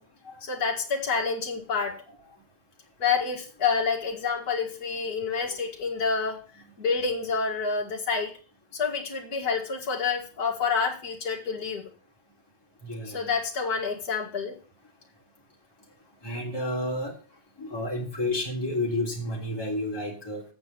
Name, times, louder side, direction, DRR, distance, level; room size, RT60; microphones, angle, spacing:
voice 1, 0.4-2.0 3.0-6.4 6.8-8.3 8.7-11.9 13.1-14.6, left 5 dB, 55° left, -3 dB, 2.5 m, -28 dB
voice 2, 12.8-13.4 16.2-17.1 17.6-20.4, left 1 dB, 10° left, -3 dB, 3.3 m, -31 dB
8.3 x 6.1 x 7.9 m, 0.37 s
omnidirectional pair, 2.1 m